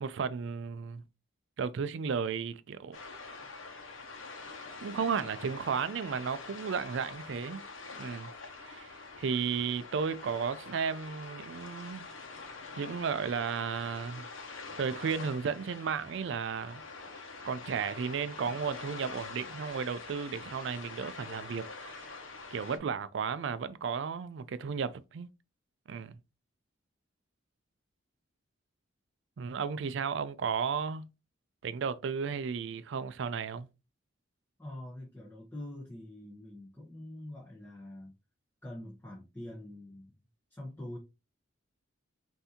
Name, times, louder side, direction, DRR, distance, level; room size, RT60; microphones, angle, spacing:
voice 1, 0.0-1.0 1.6-3.0 4.8-7.6 8.0-8.3 8.6-12.1 12.8-14.3 14.8-16.8 17.4-22.1 22.5-25.3 25.9-26.2 29.4-31.0 31.6-33.7, right 6 dB, 65° right, 0.4 m, -34 dB
sound 1, 2.9-22.8, left 4 dB, 80° left, 0.9 m, -45 dB
voice 2, 34.6-38.1 38.6-40.1 40.5-41.0, left 1 dB, 10° left, 0.9 m, -45 dB
5.5 x 2.7 x 2.8 m
head